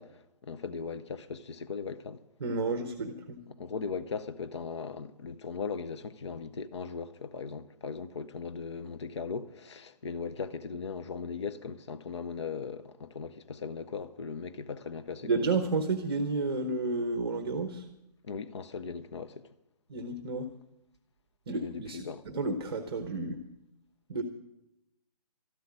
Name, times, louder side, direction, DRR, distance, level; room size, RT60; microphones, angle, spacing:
voice 1, 0.0-2.2 3.6-15.3 18.2-19.5 21.6-22.2, left 5 dB, 40° left, 0.6 m, -38 dB
voice 2, 2.4-3.4 15.2-17.9 19.9-20.5 21.5-22.1 22.3-23.4 24.1-24.2, right 3 dB, 35° right, 1.0 m, -31 dB
13.5 x 7.8 x 9.9 m
hypercardioid pair, 175°, 21 cm